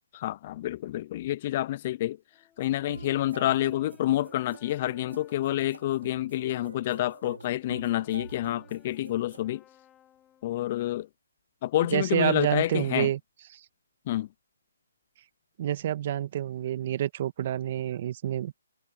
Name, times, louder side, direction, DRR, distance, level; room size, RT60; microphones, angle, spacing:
voice 1, 0.1-2.2 2.6-9.6 10.4-11.1 11.6-13.1 14.1-14.3, left 14 dB, 35° left, 0.4 m, -28 dB
Brass instrument, 2.3-6.3 6.8-10.9, left 11 dB, 15° left, 6.8 m, -59 dB
sound 1, 2.6-9.4, right 4 dB, 85° right, 2.7 m, -46 dB
voice 2, 11.9-13.2 13.5-13.6 15.6-18.6, right 11 dB, 40° right, 1.6 m, -28 dB
hypercardioid pair, 150°, 0 cm